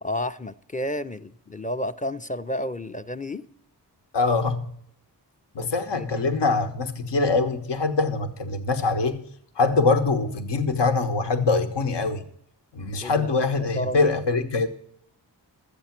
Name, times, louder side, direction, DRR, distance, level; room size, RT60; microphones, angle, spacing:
voice 1, 0.0-3.4 5.6-6.3 13.0-13.3 13.8-14.1, left 1 dB, 20° left, 0.5 m, -31 dB
voice 2, 4.1-4.6 5.5-9.3 9.6-12.2 12.7-14.7, left 3 dB, 75° left, 1.0 m, -23 dB
12.5 x 8.3 x 5.9 m
cardioid pair, 50°, 42 cm